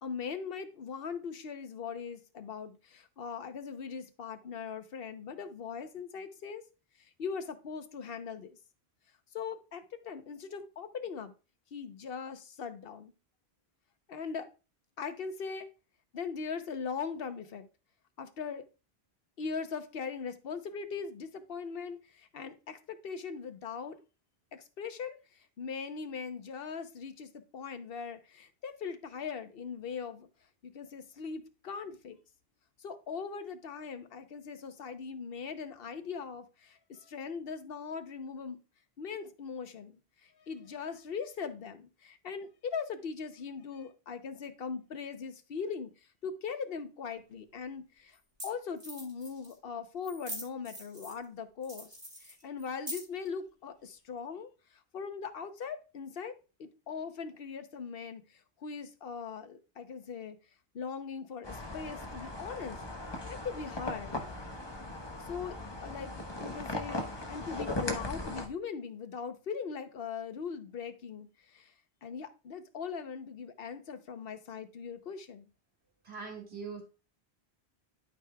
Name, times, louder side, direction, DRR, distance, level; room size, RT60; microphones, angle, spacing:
voice 1, 0.0-6.6 7.0-8.6 9.3-11.3 11.7-13.1 14.1-14.5 15.0-15.7 16.1-17.7 18.2-18.6 19.4-24.0 24.5-30.3 30.6-32.2 32.8-38.6 39.0-45.9 46.2-48.2 48.4-60.4 60.7-62.8 63.1-64.3 65.2-65.6 65.8-66.1 66.4-71.7 72.0-75.5, left 6 dB, 65° left, 9 dB, 1.0 m, -40 dB
sound 1, 47.3-47.4 48.1-48.2 48.4-48.5 48.8-49.5 50.0-51.2 51.6-53.3, right 1 dB, 40° right, 3.0 m, -43 dB
sound 2, 61.4-68.5, left 2 dB, 25° left, 1.0 m, -38 dB
voice 2, 76.0-76.8, right 5 dB, 70° right, -1 dB, 2.3 m, -41 dB
12.0 x 5.0 x 2.2 m, 0.31 s
omnidirectional pair, 1.1 m